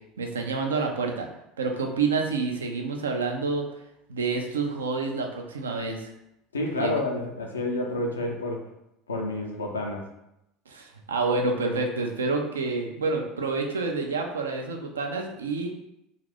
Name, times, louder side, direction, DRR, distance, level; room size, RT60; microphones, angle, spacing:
voice 1, 0.2-1.3 1.6-3.7 4.1-6.1 6.8-6.9 10.7-15.7, right 4 dB, 80° right, 3 dB, 0.4 m, -28 dB
voice 2, 6.5-8.7 9.1-10.1, left 2 dB, 85° left, 1 dB, 0.4 m, -29 dB
2.6 x 2.3 x 3.4 m, 0.85 s
figure-of-eight pair, 70°, 0 cm